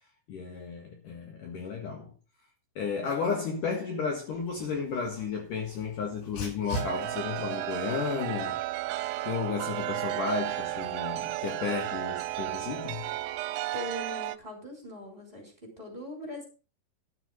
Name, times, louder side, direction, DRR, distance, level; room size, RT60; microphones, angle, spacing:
voice 1, 0.3-2.1 2.8-8.6 9.2-13.1, left 5 dB, 60° left, 3.0 m, -33 dB
Dog, 4.3-13.4, left 2 dB, 90° left, 4.8 m, -45 dB
Chime, 6.7-14.4, right 16 dB, 80° right, 2.7 m, -33 dB
voice 2, 13.7-16.4, left 1 dB, 10° right, 4.8 m, -41 dB
12.5 x 7.5 x 5.3 m
omnidirectional pair, 4.8 m